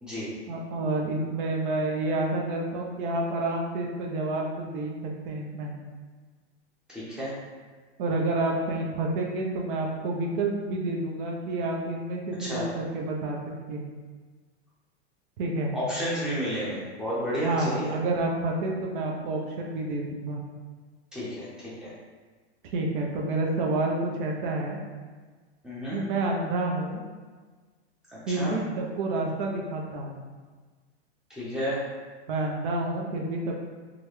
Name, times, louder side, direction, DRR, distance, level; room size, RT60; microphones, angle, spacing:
voice 1, 0.5-5.7 8.0-13.4 13.7-13.8 15.4-15.7 17.4-20.4 22.7-24.8 25.9-27.0 28.3-30.2 32.3-33.6, right 2 dB, 50° right, -1 dB, 0.7 m, -29 dB
voice 2, 6.9-7.3 12.4-12.7 15.7-17.9 21.1-21.9 25.6-26.0 28.1-28.5 31.3-31.8, equal, ahead, -9 dB, 0.7 m, -31 dB
3.7 x 2.2 x 3.1 m, 1.4 s
supercardioid pair, 145°, 34 cm